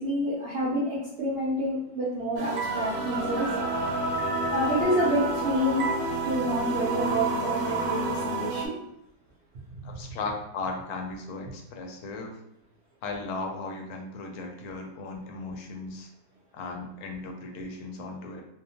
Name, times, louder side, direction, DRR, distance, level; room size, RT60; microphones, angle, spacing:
voice 1, 0.0-3.5 4.5-5.9 6.2-8.7, equal, 60° right, -7 dB, 0.7 m, -28 dB
sound 1, 2.4-8.7, right 2 dB, 85° right, 1.1 m, -29 dB
voice 2, 9.8-12.4 13.0-16.1 16.5-18.4, left 3 dB, 80° left, 2 dB, 1.0 m, -36 dB
2.7 x 2.1 x 2.8 m, 0.80 s
omnidirectional pair, 1.6 m